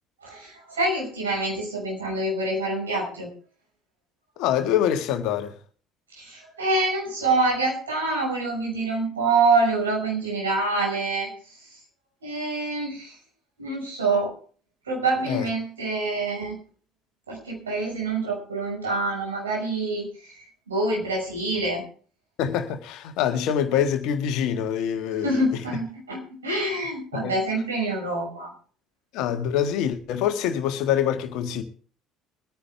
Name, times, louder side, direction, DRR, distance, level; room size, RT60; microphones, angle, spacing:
voice 1, 0.2-3.3 6.1-11.3 12.2-13.2 13.6-14.3 14.9-16.6 17.3-20.4 20.7-21.8 25.2-28.5, right 2 dB, 80° right, 5.6 m, -26 dB
voice 2, 4.4-5.6 15.3-15.5 22.4-25.6 27.1-27.3 29.1-31.6, left 9 dB, 60° left, 1.6 m, -25 dB
23.0 x 9.7 x 3.4 m
figure-of-eight pair, 55°, 0 cm